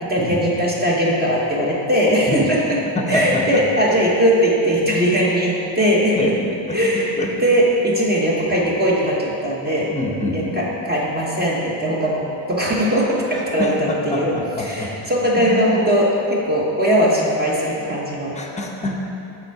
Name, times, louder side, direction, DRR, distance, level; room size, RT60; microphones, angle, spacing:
voice 1, 0.0-2.8 3.1-6.3 6.7-7.1 7.4-9.9 10.3-14.3 14.6-18.4, equal, 20° right, -5 dB, 1.0 m, -19 dB
voice 2, 3.0-3.6 6.2-6.3 6.7-7.3 9.9-10.6 13.3-14.9 15.4-15.6 18.3-19.0, left 2 dB, 15° left, 1 dB, 0.8 m, -26 dB
6.9 x 4.5 x 4.6 m, 2.8 s
cardioid pair, 105°, 48 cm